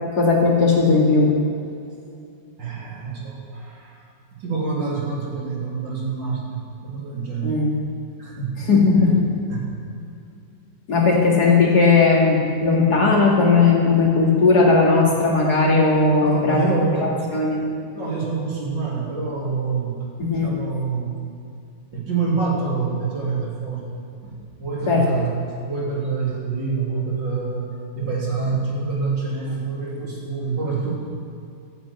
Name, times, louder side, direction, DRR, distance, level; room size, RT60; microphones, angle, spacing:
voice 1, 0.2-1.3 7.4-7.7 8.6-9.2 10.9-16.6 17.3-17.6 20.2-20.5 24.9-25.0, left 4 dB, 55° left, -3 dB, 3.0 m, -17 dB
voice 2, 2.6-4.1 4.4-7.6 8.2-8.6 9.5-9.7 16.2-17.3 17.9-20.1 20.4-21.2 21.9-25.4 25.6-30.9, right 4 dB, 70° right, -5 dB, 3.7 m, -26 dB
13.5 x 8.4 x 8.4 m, 2.5 s
omnidirectional pair, 2.1 m